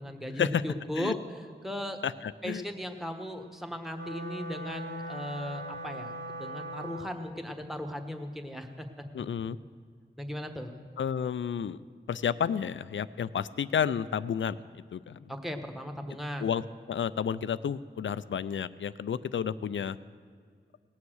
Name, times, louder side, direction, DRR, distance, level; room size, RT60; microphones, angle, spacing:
voice 1, 0.0-2.0 2.4-6.1 6.4-9.0 10.2-10.7 15.3-16.5, left 1 dB, ahead, 5 dB, 1.3 m, -37 dB
voice 2, 2.0-2.6 9.1-9.6 11.0-11.8 12.1-15.3 16.4-16.6 16.9-20.0, left 8 dB, 75° left, 15 dB, 0.4 m, -31 dB
Wind instrument woodwind instrument, 3.9-7.3, right 1 dB, 65° right, 2.6 m, -39 dB
18.0 x 7.2 x 6.3 m, 2.1 s
cardioid pair, 45°, 20 cm